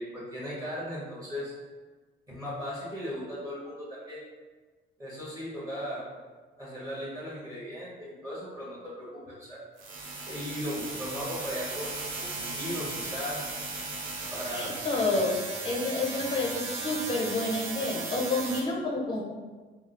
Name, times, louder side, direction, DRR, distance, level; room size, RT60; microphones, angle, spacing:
voice 1, 0.0-1.5 2.3-4.2 5.0-6.0 6.6-9.6 10.3-11.9 12.2-13.4 14.3-14.8, equal, 15° right, -8 dB, 1.1 m, -37 dB
sound 1, 9.8-18.6, right 3 dB, 80° right, 0.6 m, -36 dB
voice 2, 14.5-15.4 15.6-19.2, left 2 dB, 25° left, -1 dB, 0.6 m, -29 dB
3.5 x 2.0 x 2.4 m, 1.3 s
cardioid pair, 90°, 20 cm